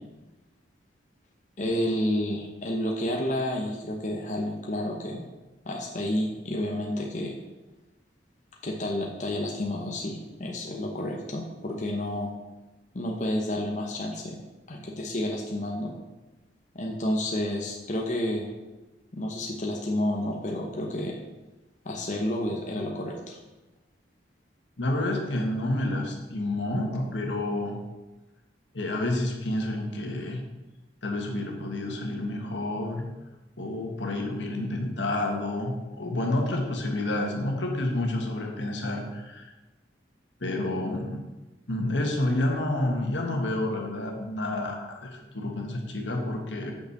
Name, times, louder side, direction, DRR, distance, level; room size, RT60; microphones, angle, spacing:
voice 1, 1.6-5.3 5.6-7.3 8.6-12.3 12.9-14.4 14.7-15.9 16.7-18.5 19.1-21.1 21.8-23.4, left 1 dB, 40° left, 0 dB, 0.9 m, -30 dB
voice 2, 24.8-27.8 28.7-30.4 31.0-33.0 33.6-39.5 40.4-41.2 41.7-46.7, left 1 dB, 80° left, 1 dB, 1.6 m, -29 dB
6.6 x 5.6 x 6.6 m, 1.1 s
head